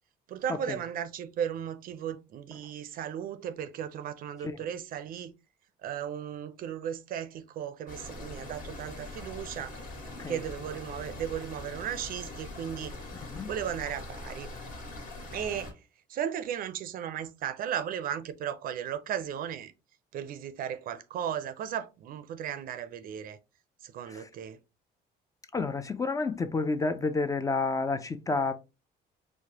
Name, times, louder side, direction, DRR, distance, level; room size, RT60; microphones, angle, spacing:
voice 1, 0.3-5.3 5.8-9.8 10.3-12.9 13.5-14.5 15.3-15.7 16.1-19.7 20.1-23.4 23.8-24.6, right 9 dB, 60° right, 0.4 m, -35 dB
sound 1, 7.9-15.7, left 2 dB, 55° left, 1.6 m, -42 dB
voice 2, 25.5-28.5, left 3 dB, 20° left, 0.3 m, -30 dB
4.7 x 2.1 x 2.8 m
cardioid pair, 110°, 17 cm